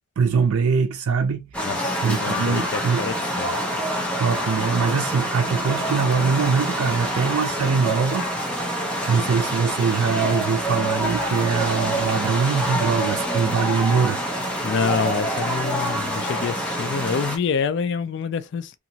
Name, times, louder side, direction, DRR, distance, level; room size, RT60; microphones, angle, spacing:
voice 1, 0.2-1.5 2.0-3.0 4.2-8.3 9.1-14.2, right 5 dB, 90° right, 0.4 m, -22 dB
sound 1, 1.5-17.4, equal, 5° left, 0.6 m, -26 dB
voice 2, 1.6-3.5 14.6-18.7, left 5 dB, 55° left, 0.3 m, -27 dB
2.8 x 2.5 x 2.7 m
head